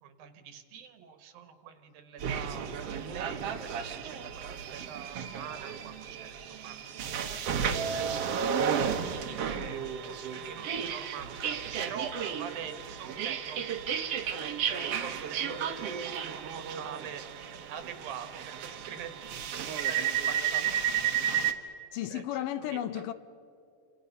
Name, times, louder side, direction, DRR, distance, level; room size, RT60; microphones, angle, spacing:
voice 1, 0.0-8.4 8.7-9.8 10.1-11.3 11.8-14.9 15.3-21.4 22.1-22.2 22.6-23.0, right 8 dB, 85° right, 3.3 m, -45 dB
sound 1, 2.2-21.5, right 8 dB, 60° right, 1.7 m, -33 dB
voice 2, 9.6-9.9 21.9-23.1, left 12 dB, 75° left, 2.1 m, -34 dB
28.5 x 25.5 x 5.5 m
omnidirectional pair, 4.1 m